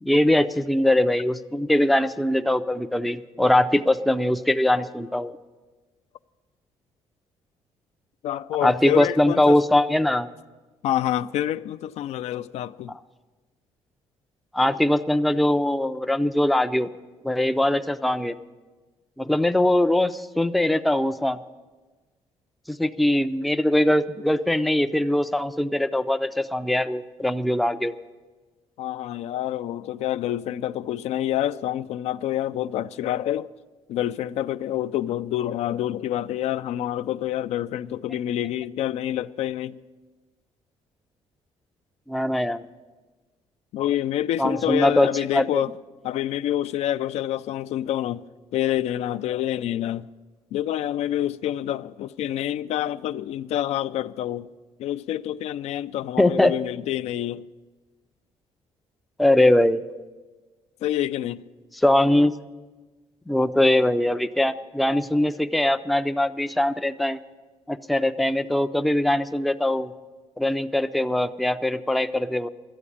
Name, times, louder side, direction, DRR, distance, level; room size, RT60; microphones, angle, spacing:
voice 1, 0.0-5.3 8.6-10.3 14.5-16.9 17.2-18.3 19.2-21.4 22.7-27.9 42.1-42.6 44.4-45.6 56.2-56.5 59.2-59.8 61.8-62.3 63.3-67.2 67.7-69.9 70.4-72.5, left 1 dB, ahead, 0.3 m, -21 dB
voice 2, 8.2-9.6 10.8-12.9 28.8-33.5 33.9-39.8 43.7-45.7 46.0-48.2 48.5-50.1 50.5-54.5 54.8-57.5 60.8-61.4, left 12 dB, 75° left, 0.4 m, -27 dB
12.5 x 8.6 x 8.4 m
cardioid pair, 140°, 11 cm